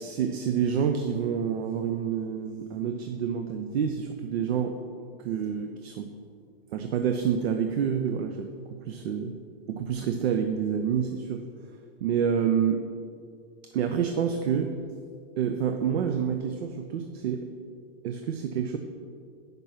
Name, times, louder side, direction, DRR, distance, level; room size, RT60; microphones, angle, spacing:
voice 1, 0.0-4.8 5.2-6.1 6.7-8.5 8.9-9.3 9.7-11.4 12.0-12.8 13.7-14.7 15.4-17.5 18.0-18.8, right 7 dB, 85° right, 6 dB, 0.6 m, -28 dB
6.1 x 5.3 x 5.5 m, 2.2 s
supercardioid pair, 165°, 30 cm